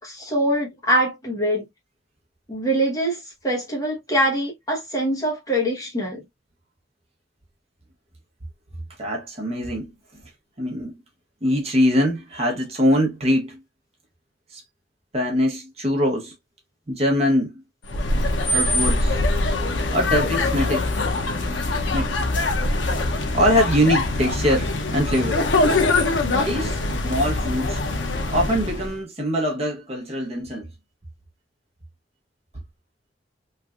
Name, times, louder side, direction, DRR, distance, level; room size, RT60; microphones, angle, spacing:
voice 1, 0.0-1.7 2.5-6.2, right 1 dB, 20° left, 1.0 m, -24 dB
voice 2, 9.0-10.2 10.6-11.0 11.4-13.6 14.5-14.6 15.1-16.3 16.9-17.5 18.5-19.2 19.9-20.9 21.9-22.1 23.3-25.5 26.4-27.8 28.3-30.7, equal, 35° right, 0.8 m, -23 dB
sound 1, 17.8-29.0, left 2 dB, 85° left, 0.6 m, -23 dB
3.2 x 2.5 x 2.3 m
head